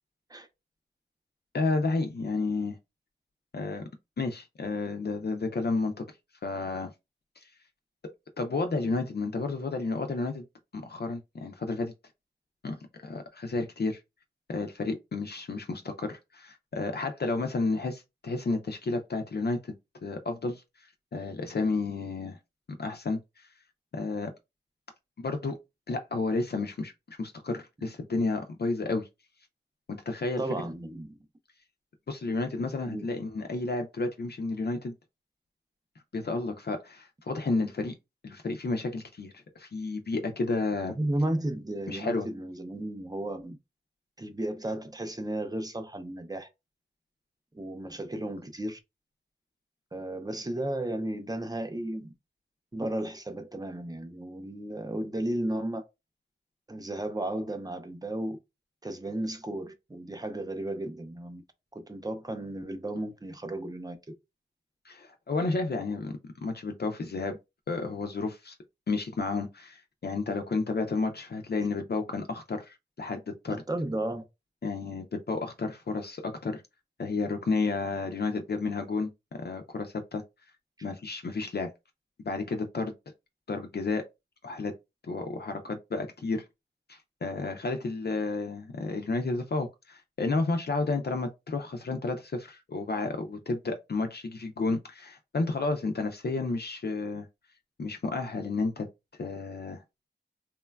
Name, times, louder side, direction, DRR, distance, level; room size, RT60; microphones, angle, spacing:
voice 1, 1.5-2.8 3.5-3.9 4.2-6.0 6.4-6.9 7.4-7.5 8.4-10.4 10.7-11.9 12.6-12.8 13.0-14.0 14.5-19.7 20.0-20.6 21.1-22.4 22.8-23.5 23.9-24.3 25.2-25.6 25.9-29.1 29.9-30.4 32.1-34.9 36.1-38.0 38.2-41.0 41.9-42.3 64.9-67.4 67.7-68.5 68.9-73.6 74.6-76.6 77.0-80.2 80.8-81.7 82.2-82.9 83.5-84.1 84.4-84.7 85.1-86.4 86.9-97.3 97.8-98.9 99.2-99.8, left 3 dB, 55° left, 0.4 m, -31 dB
voice 2, 30.4-31.2 32.9-33.1 41.0-43.6 44.2-46.5 47.5-48.8 49.9-52.1 52.7-55.8 56.7-58.4 58.8-61.4 61.7-64.0 73.5-74.2, right 1 dB, 20° right, 0.5 m, -34 dB
3.0 x 2.2 x 2.2 m
wide cardioid pair, 50°, 20 cm